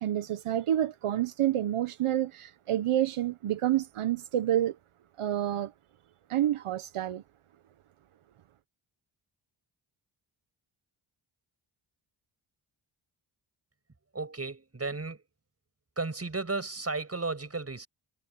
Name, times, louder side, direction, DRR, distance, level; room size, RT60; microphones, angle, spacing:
voice 1, 0.0-4.7 5.2-5.7 6.3-7.2, right 12 dB, 80° right, 1.2 m, -28 dB
voice 2, 14.1-15.3 16.0-17.9, right 3 dB, 30° right, 7.1 m, -34 dB
cardioid pair, 70°, 50 cm